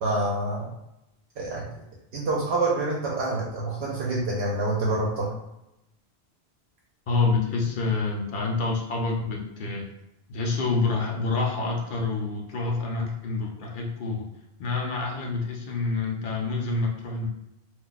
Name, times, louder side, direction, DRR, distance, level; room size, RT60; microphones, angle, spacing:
voice 1, 0.0-0.7 1.4-1.7 2.1-5.3, right 2 dB, 75° right, -4 dB, 0.9 m, -27 dB
voice 2, 7.1-9.9 10.3-14.3 14.6-17.3, left 3 dB, 55° left, 0 dB, 0.8 m, -27 dB
2.4 x 2.2 x 3.9 m, 0.87 s
omnidirectional pair, 1.1 m